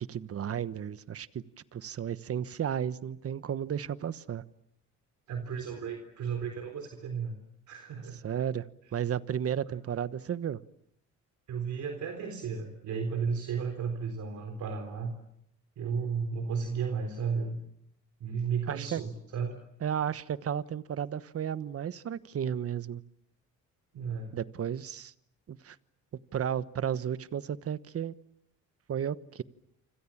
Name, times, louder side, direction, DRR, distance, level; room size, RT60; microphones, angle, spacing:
voice 1, 0.1-1.4 1.7-4.4 8.2-8.7 8.9-10.6 18.7-19.0 19.8-23.0 24.3-25.1 25.5-25.8 26.3-28.1 28.9-29.4, right 9 dB, 50° right, 1.2 m, -33 dB
voice 2, 5.3-7.4 7.7-8.2 11.5-15.1 15.8-17.6 18.2-19.5 23.9-24.3, right 6 dB, 75° right, 3.8 m, -33 dB
28.5 x 26.0 x 7.4 m
cardioid pair, 90°, 30 cm